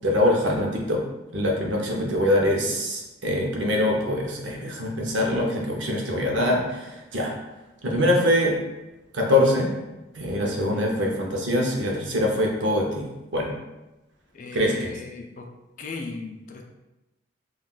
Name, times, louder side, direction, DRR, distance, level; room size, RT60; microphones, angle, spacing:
voice 1, 0.0-1.0 1.3-7.3 7.8-8.5 9.1-9.7 10.1-13.5 14.5-15.0, left 1 dB, 80° right, 0 dB, 0.6 m, -23 dB
voice 2, 10.5-10.9 14.3-15.5 15.8-16.6, left 4 dB, 45° left, 2 dB, 0.3 m, -37 dB
3.7 x 2.3 x 2.3 m, 1.0 s
head